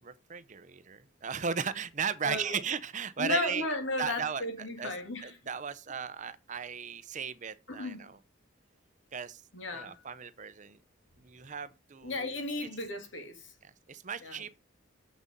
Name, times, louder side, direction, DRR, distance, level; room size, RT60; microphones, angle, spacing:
voice 1, 0.0-3.7 4.0-4.9 5.2-8.2 9.1-9.4 9.7-10.8 11.2-12.3 13.6-14.6, right 6 dB, 40° right, 0.7 m, -36 dB
voice 2, 2.2-2.6 3.2-5.4 7.7-8.0 9.5-10.0 12.0-13.5 14.2-14.4, left 2 dB, 70° left, 2.5 m, -34 dB
7.5 x 6.1 x 5.3 m
head